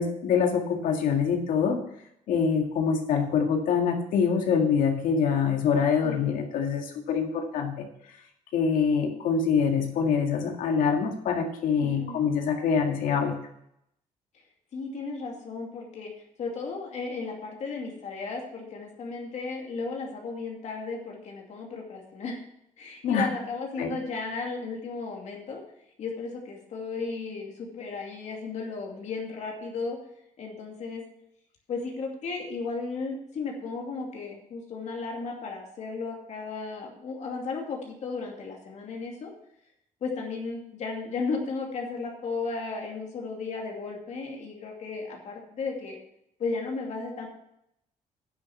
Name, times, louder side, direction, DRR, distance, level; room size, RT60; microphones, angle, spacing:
voice 1, 0.0-1.8 2.3-7.9 8.5-13.4 23.0-23.3 23.8-23.9, left 6 dB, 90° left, 3 dB, 2.1 m, -25 dB
voice 2, 6.0-6.5 11.8-12.2 14.7-16.1 16.4-22.4 22.8-25.6 26.0-30.0 30.4-31.0 31.7-39.3 40.0-46.0 46.4-47.3, left 4 dB, 60° left, 0 dB, 2.5 m, -34 dB
9.7 x 7.1 x 6.0 m, 0.76 s
cardioid pair, 125°, 14 cm